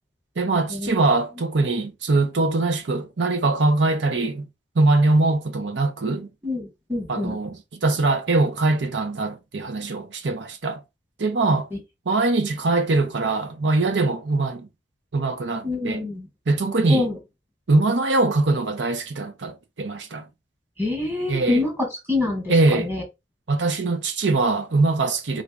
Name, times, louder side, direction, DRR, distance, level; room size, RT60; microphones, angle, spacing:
voice 1, 0.4-4.5 4.8-6.3 7.1-10.8 11.2-11.7 12.1-14.7 15.1-16.0 16.5-17.1 17.7-20.3 21.3-21.6 22.5-22.9 23.5-25.4, right 3 dB, 90° right, 0.7 m, -22 dB
voice 2, 6.4-7.4 11.7-11.8 15.6-16.3 16.9-17.2 20.8-23.0, left 2 dB, 15° right, 1.5 m, -26 dB
3.8 x 3.3 x 2.4 m
head